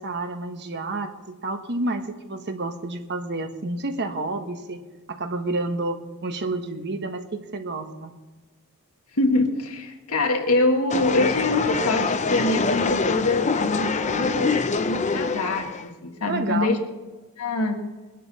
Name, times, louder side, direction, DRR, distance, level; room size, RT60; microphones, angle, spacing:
voice 1, 0.0-4.8 5.1-8.1 16.3-16.8, right 2 dB, 50° right, 6 dB, 1.3 m, -29 dB
voice 2, 9.2-14.6 14.8-16.8 17.4-17.8, left 2 dB, 75° left, 3 dB, 1.8 m, -24 dB
sound 1, 10.9-15.8, left 4 dB, 30° left, 0.6 m, -25 dB
22.0 x 11.0 x 4.2 m, 1.2 s
head